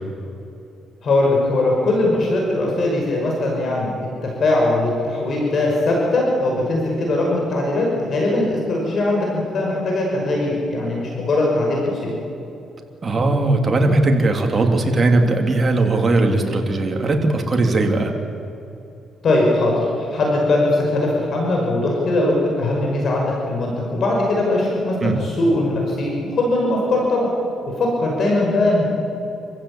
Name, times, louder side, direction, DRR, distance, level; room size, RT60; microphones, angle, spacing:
voice 1, 1.0-4.0 4.2-12.1 19.2-27.3 27.7-28.9, left 2 dB, 55° left, -1 dB, 5.6 m, -20 dB
voice 2, 13.0-18.1 25.0-25.2, right 2 dB, 35° right, 3 dB, 3.3 m, -18 dB
27.0 x 15.5 x 8.7 m, 2.8 s
cardioid pair, 90°, 0 cm